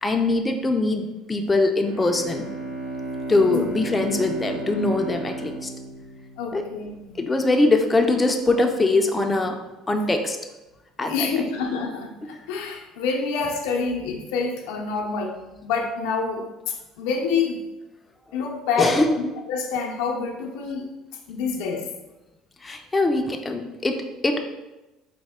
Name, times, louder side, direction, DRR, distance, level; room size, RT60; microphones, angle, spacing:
voice 1, 0.0-2.5 3.3-5.7 6.5-6.7 7.2-9.6 9.9-10.4 11.0-11.3 18.8-19.2 22.6-24.4, left 2 dB, 20° left, 4 dB, 0.3 m, -22 dB
Bowed string instrument, 1.8-7.0, right 2 dB, 85° right, 0.7 m, -34 dB
voice 2, 6.4-7.2 11.1-15.3 15.6-17.6 18.3-20.9 21.3-21.9, left 5 dB, 85° left, 1 dB, 0.5 m, -27 dB
4.1 x 2.1 x 3.5 m, 1.0 s
supercardioid pair, 100°, 0 cm